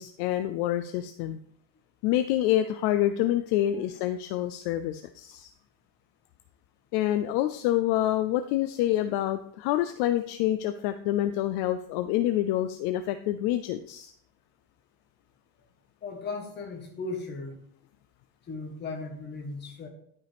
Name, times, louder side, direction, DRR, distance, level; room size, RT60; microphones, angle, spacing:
voice 1, 0.0-1.4 2.0-5.5 6.9-14.1, left 13 dB, 55° left, 9 dB, 0.5 m, -27 dB
voice 2, 16.0-17.6 18.5-19.9, left 3 dB, 20° left, 2 dB, 1.4 m, -37 dB
11.5 x 5.3 x 3.5 m, 0.65 s
cardioid pair, 175°, 47 cm